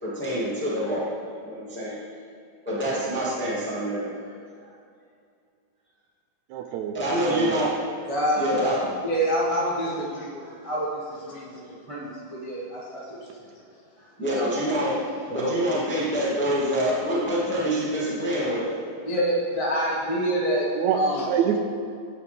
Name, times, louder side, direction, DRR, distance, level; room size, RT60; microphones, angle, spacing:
voice 1, 0.0-1.0 1.4-2.0 2.6-4.0 4.6-4.7 6.9-7.7 8.4-8.8 14.2-15.0 15.3-18.7, equal, 5° left, -8 dB, 1.7 m, -26 dB
voice 2, 6.5-7.6 20.8-21.0 21.2-21.6, right 9 dB, 80° right, 5 dB, 1.7 m, -26 dB
voice 3, 8.1-8.6 9.0-11.6 11.9-13.2 14.2-14.6 15.3-15.6 19.0-21.3, equal, 60° right, -6 dB, 0.3 m, -27 dB
12.0 x 9.4 x 3.5 m, 2.4 s
omnidirectional pair, 3.8 m